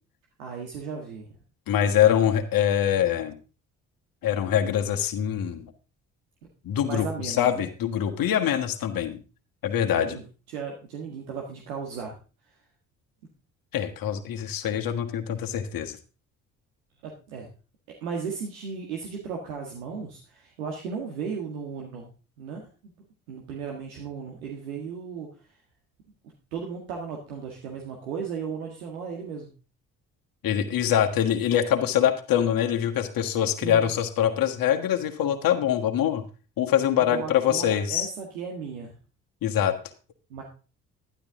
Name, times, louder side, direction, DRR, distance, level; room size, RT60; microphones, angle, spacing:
voice 1, 0.4-1.3 6.8-7.7 9.9-10.2 10.5-12.1 17.3-17.5 18.0-22.1 22.4-22.6 23.3-25.3 26.5-29.5 33.6-33.9 37.1-38.9 40.3-40.4, right 6 dB, 85° right, 0 dB, 1.8 m, -35 dB
voice 2, 1.7-3.4 4.2-5.7 6.6-9.2 9.6-10.2 13.7-16.0 30.4-36.2 36.6-38.1 39.4-39.8, left 10 dB, 55° left, 4 dB, 1.6 m, -24 dB
12.0 x 10.5 x 3.7 m, 0.35 s
hypercardioid pair, 50°, 40 cm